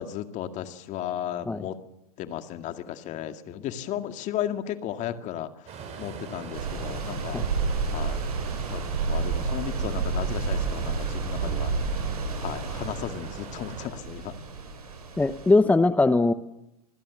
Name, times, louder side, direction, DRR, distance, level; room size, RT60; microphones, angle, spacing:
voice 1, 0.0-1.8 2.2-5.5 6.0-7.4 7.9-8.2 8.7-11.7 12.4-14.3, left 11 dB, 40° left, 8 dB, 2.1 m, -34 dB
sound 1, 5.7-13.9, right 5 dB, 35° right, 7.0 m, -41 dB
sound 2, 6.5-15.5, right 4 dB, 85° right, 6.9 m, -30 dB
voice 2, 15.2-16.3, left 3 dB, 10° left, 12 dB, 0.9 m, -20 dB
26.5 x 20.5 x 7.2 m, 0.87 s
hypercardioid pair, 105°, 19 cm